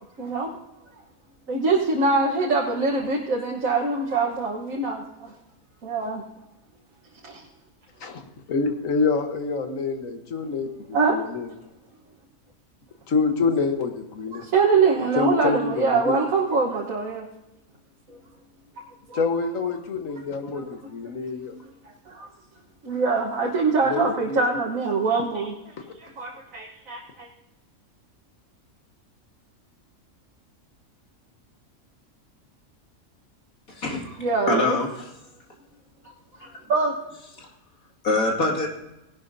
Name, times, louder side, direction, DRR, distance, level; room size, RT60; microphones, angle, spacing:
voice 1, 0.2-0.5 1.5-5.3 5.8-6.2 7.2-7.4 10.9-11.2 14.3-17.3 18.1-18.2 19.1-19.2 20.5-20.6 22.1-22.3 22.8-27.3 34.2-34.8 36.7-36.9, right 4 dB, 75° right, -2 dB, 1.7 m, -24 dB
voice 2, 8.5-11.5 13.1-14.4 15.0-16.2 19.1-21.5 23.8-24.4 25.8-25.9, left 4 dB, 70° left, 6 dB, 1.6 m, -26 dB
voice 3, 33.7-34.2 34.5-35.1 36.4-36.5 38.0-38.7, left 2 dB, 85° left, 0 dB, 2.6 m, -24 dB
18.0 x 11.5 x 2.7 m, 0.93 s
omnidirectional pair, 1.4 m